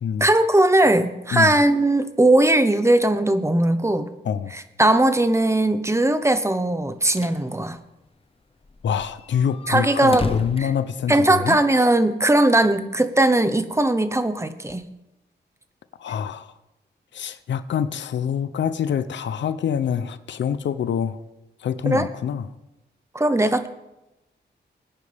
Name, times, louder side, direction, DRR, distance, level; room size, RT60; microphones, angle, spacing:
voice 1, 0.2-4.1 4.5-7.8 9.7-10.3 10.6-10.7 11.1-14.9 21.8-22.1 23.1-23.7, right 1 dB, 15° right, 10 dB, 1.0 m, -19 dB
voice 2, 4.2-4.6 8.8-11.6 16.0-16.5 17.1-21.2 21.6-22.5, left 8 dB, 90° left, 13 dB, 0.7 m, -25 dB
sound 1, 6.8-7.4 7.8-7.9 8.1-8.2 8.6-11.6, left 3 dB, 30° left, 1.0 m, -33 dB
20.0 x 10.0 x 3.5 m, 0.94 s
cardioid pair, 75°, 18 cm